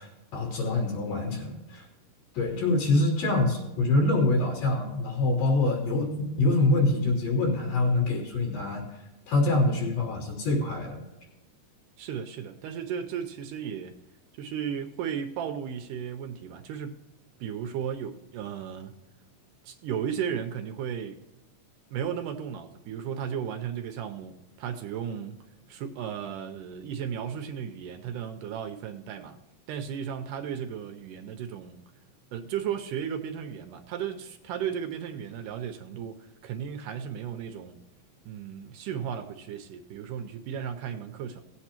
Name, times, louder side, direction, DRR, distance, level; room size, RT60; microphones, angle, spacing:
voice 1, 0.0-1.9 2.3-8.8 9.3-11.0, left 2 dB, 75° left, -4 dB, 5.0 m, -25 dB
voice 2, 12.0-13.9 14.4-17.0 17.4-18.9 19.6-21.2 21.9-25.4 25.7-29.4 29.7-31.8 32.3-37.8 38.3-41.4, right 8 dB, 80° right, 5 dB, 2.0 m, -35 dB
18.5 x 8.0 x 2.9 m, 1.0 s
omnidirectional pair, 4.1 m